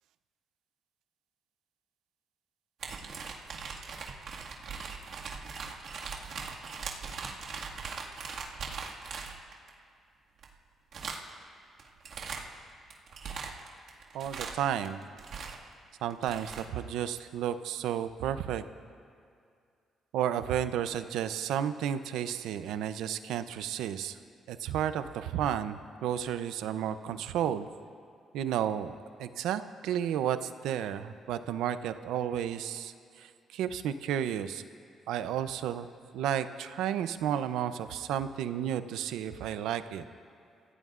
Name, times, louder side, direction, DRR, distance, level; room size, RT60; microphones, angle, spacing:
sound 1, 2.8-9.7 10.4-10.5 10.9-11.4 11.8-12.5 12.9-15.7 16.1-16.7, right 5 dB, 65° right, 1.9 m, -40 dB
voice 1, 14.1-15.0 16.0-18.6 20.1-24.2 24.5-27.7 28.3-28.9 29.2-34.6 35.1-35.9 36.1-40.0, right 10 dB, 90° right, 11 dB, 0.6 m, -32 dB
28.5 x 16.0 x 2.5 m, 2.3 s
cardioid pair, 90°, 0 cm